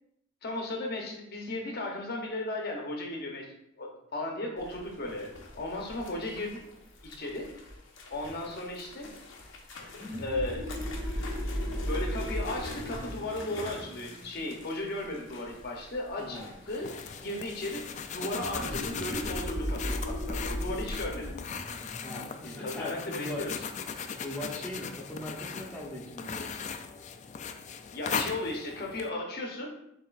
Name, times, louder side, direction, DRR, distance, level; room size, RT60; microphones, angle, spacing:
voice 1, 0.4-3.5 3.8-5.3 5.6-6.6 7.0-7.5 8.1-9.1 10.1-10.7 11.9-16.4 16.7-16.9 17.2-21.3 22.4-23.5 27.9-29.7, left 1 dB, 55° left, 1 dB, 0.8 m, -35 dB
sound 1, 4.6-22.0, left 2 dB, 90° left, 0.8 m, -48 dB
sound 2, 10.0-15.3 18.3-23.6, equal, 10° right, 1.2 m, -36 dB
voice 2, 16.2-16.6 22.0-23.4 24.0-26.7, left 1 dB, 5° left, -4 dB, 0.8 m, -40 dB
sound 3, 16.7-29.1, left 6 dB, 40° left, 0.3 m, -39 dB
6.8 x 3.0 x 2.4 m, 0.78 s
head